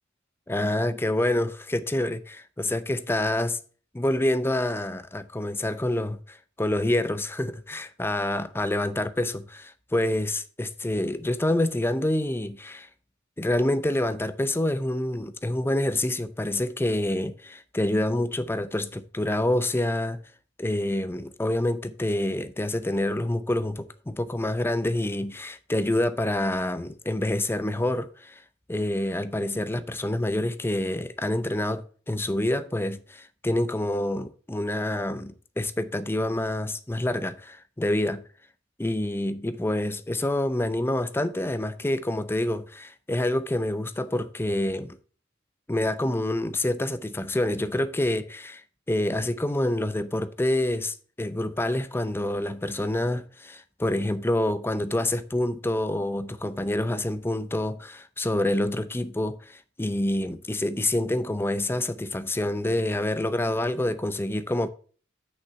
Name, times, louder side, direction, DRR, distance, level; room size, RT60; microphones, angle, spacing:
voice 1, 0.5-3.6 3.9-12.9 13.4-20.2 20.6-28.4 28.7-38.2 38.8-45.0 45.7-64.7, left 1 dB, 10° left, 0.5 m, -27 dB
6.5 x 5.7 x 6.5 m
head